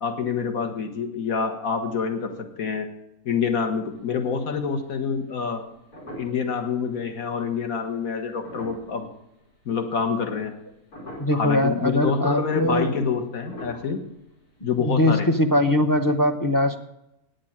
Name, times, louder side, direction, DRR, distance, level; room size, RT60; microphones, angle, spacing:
voice 1, 0.0-2.9 3.3-5.6 6.2-9.1 9.7-10.5 11.3-14.0 14.6-15.3, left 6 dB, 65° left, 6 dB, 1.9 m, -27 dB
sound 1, 3.9-4.6 5.0-5.1 5.6-6.6 7.1-7.2 8.2-9.7 10.1-10.6 10.9-11.6 12.0-12.1 12.3-12.5 13.3-14.9 15.2-15.3, equal, 90° left, 5.2 m, -42 dB
voice 2, 11.2-13.0 14.8-16.8, left 1 dB, 20° left, 5 dB, 0.6 m, -21 dB
9.5 x 8.8 x 8.8 m, 0.86 s
omnidirectional pair, 1.6 m